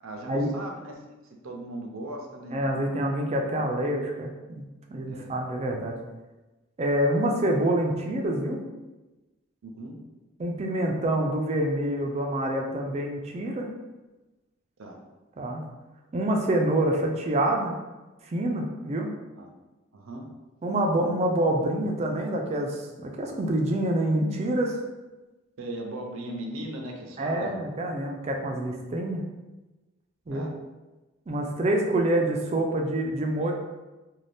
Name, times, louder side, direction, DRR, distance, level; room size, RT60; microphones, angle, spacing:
voice 1, 0.0-2.8 3.5-3.6 5.1-5.4 9.6-10.0 14.8-15.0 19.3-19.5 19.9-20.3 25.6-27.5 30.3-30.5, right 1 dB, 80° right, 1 dB, 0.5 m, -38 dB
voice 2, 2.5-4.6 4.9-6.0 6.8-8.6 10.4-13.7 15.4-15.6 16.1-17.8 18.2-19.1 20.6-24.8 27.2-29.2 30.3-30.5 31.3-33.5, right 1 dB, 30° right, 1 dB, 0.3 m, -26 dB
2.6 x 2.2 x 3.3 m, 1.1 s
head